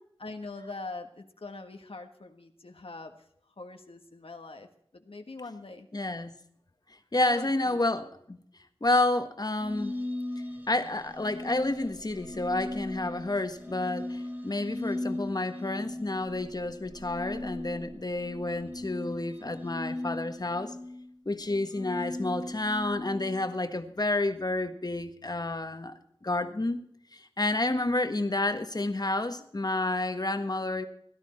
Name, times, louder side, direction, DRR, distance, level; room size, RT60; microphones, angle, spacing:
voice 1, 0.2-3.1 3.6-4.7 4.9-5.9 7.1-7.8, left 3 dB, 80° left, 5 dB, 1.5 m, -43 dB
voice 2, 5.9-6.3 7.1-8.4 8.8-10.0 10.7-20.7 21.2-26.8 27.1-30.9, left 2 dB, 45° left, 8 dB, 1.5 m, -30 dB
sound 1, 9.6-23.6, left 1 dB, 20° right, 3.3 m, -38 dB
17.0 x 12.0 x 4.4 m, 0.67 s
wide cardioid pair, 55°, 10 cm